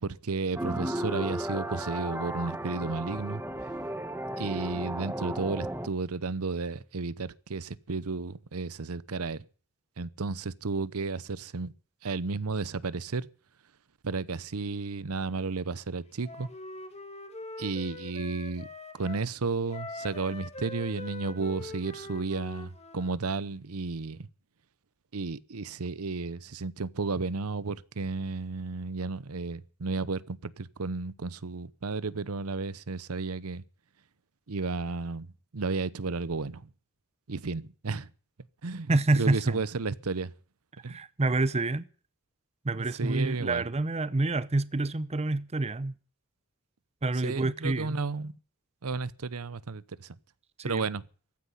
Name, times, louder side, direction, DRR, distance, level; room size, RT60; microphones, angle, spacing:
voice 1, 0.0-3.4 4.4-9.4 10.0-11.7 12.0-13.3 14.0-16.5 17.6-18.7 19.0-24.3 25.1-33.6 34.5-35.3 35.5-36.6 37.3-38.1 38.6-38.9 39.2-40.3 40.8-41.0 42.7-43.6 47.2-48.3 48.8-50.1 50.6-51.0, right 4 dB, 80° right, 0.8 m, -33 dB
sound 1, 0.6-5.9, right 1 dB, 10° right, 1.7 m, -34 dB
Wind instrument woodwind instrument, 16.2-19.2 19.7-23.2, left 3 dB, 30° left, 2.2 m, -43 dB
voice 2, 38.9-39.6 40.9-41.9 42.6-45.9 47.0-48.0 50.6-50.9, right 2 dB, 30° right, 0.7 m, -27 dB
15.0 x 9.8 x 9.8 m
head